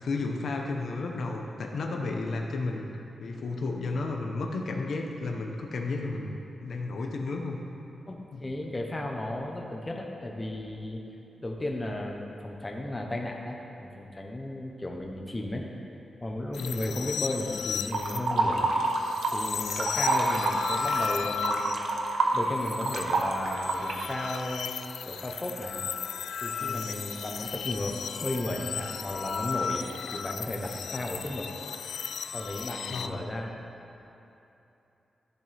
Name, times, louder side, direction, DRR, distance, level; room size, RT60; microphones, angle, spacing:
voice 1, 0.0-2.9 3.2-6.3 6.6-7.6 8.3-8.4 16.6-17.0 26.6-27.1 32.9-33.2, left 3 dB, 60° left, 1 dB, 0.8 m, -33 dB
voice 2, 8.1-11.0 11.4-15.6 16.2-18.7 19.3-24.7 25.1-25.8 26.4-31.5 32.3-33.6, left 1 dB, 15° left, 0 dB, 0.8 m, -35 dB
sound 1, 16.5-33.1, left 6 dB, 85° left, 0.3 m, -35 dB
sound 2, 17.9-19.4 19.7-24.1, right 3 dB, 85° right, 0.9 m, -27 dB
13.5 x 7.1 x 3.4 m, 2.9 s
wide cardioid pair, 170°, 0 cm